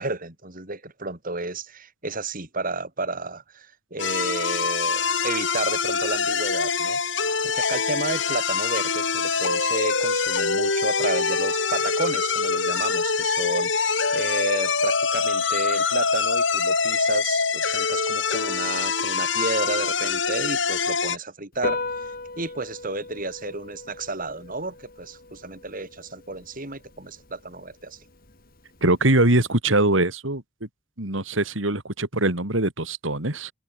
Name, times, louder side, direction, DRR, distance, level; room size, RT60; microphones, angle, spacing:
voice 1, 0.0-21.8 22.4-28.0, right 3 dB, 45° right, 5.3 m, -32 dB
sound 1, 4.0-21.2, left 5 dB, 65° left, 5.2 m, -24 dB
Piano, 21.5-29.5, left 3 dB, 50° left, 4.8 m, -37 dB
voice 2, 28.8-30.4 31.0-33.5, right 2 dB, 80° right, 3.6 m, -22 dB
head